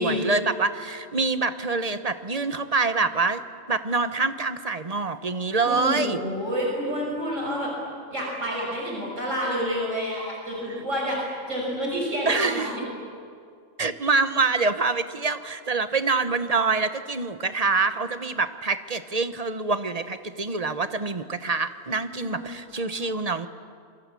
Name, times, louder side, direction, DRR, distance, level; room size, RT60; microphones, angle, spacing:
voice 1, 0.0-3.4 3.7-6.2 12.3-12.7 13.8-23.5, right 3 dB, 30° right, 11 dB, 1.1 m, -25 dB
voice 2, 5.6-7.7 8.1-11.2 11.5-12.8 22.2-23.0, equal, 75° right, -2 dB, 6.8 m, -29 dB
28.0 x 22.5 x 8.4 m, 2.2 s
omnidirectional pair, 1.3 m